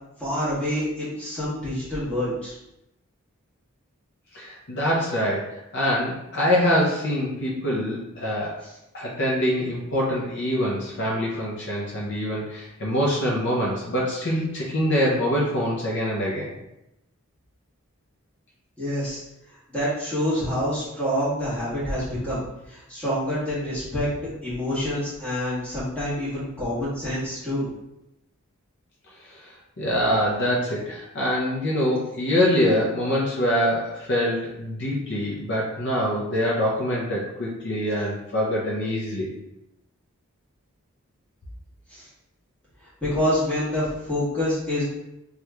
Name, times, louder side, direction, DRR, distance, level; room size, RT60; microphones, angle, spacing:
voice 1, 0.2-2.5 18.8-19.2 19.7-24.1 24.4-27.7 41.9-42.0 43.0-44.8, equal, 5° left, -11 dB, 1.3 m, -27 dB
voice 2, 4.3-8.6 8.9-16.5 29.4-39.3, equal, 55° left, -4 dB, 0.6 m, -24 dB
3.0 x 2.4 x 3.3 m, 0.87 s
head